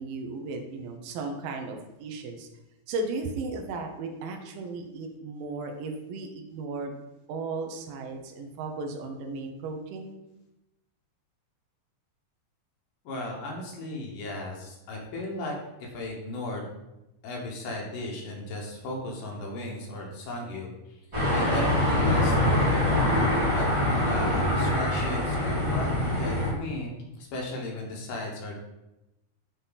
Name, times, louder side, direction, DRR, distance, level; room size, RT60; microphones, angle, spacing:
voice 1, 0.0-2.5 2.9-6.9 7.3-10.2, right 3 dB, 80° right, 3 dB, 2.6 m, -35 dB
voice 2, 13.0-15.5 15.8-16.7 17.2-20.7 21.3-23.3 23.5-23.7 24.0-28.6, left 2 dB, 70° left, -1 dB, 2.6 m, -36 dB
sound 1, 21.1-26.5, left 1 dB, 10° right, 1.8 m, -24 dB
9.5 x 4.1 x 4.0 m, 0.94 s
omnidirectional pair, 4.0 m